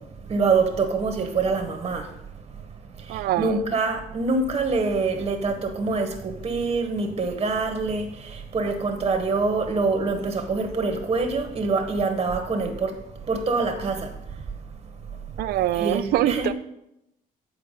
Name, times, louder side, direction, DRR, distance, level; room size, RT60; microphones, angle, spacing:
voice 1, 0.3-2.1 3.0-12.9 13.3-14.1 15.7-16.5, right 4 dB, 30° right, 0.9 m, -25 dB
voice 2, 3.1-3.6 15.4-16.5, right 13 dB, 65° right, 0.4 m, -24 dB
8.8 x 4.5 x 5.4 m
cardioid pair, 110°, 17 cm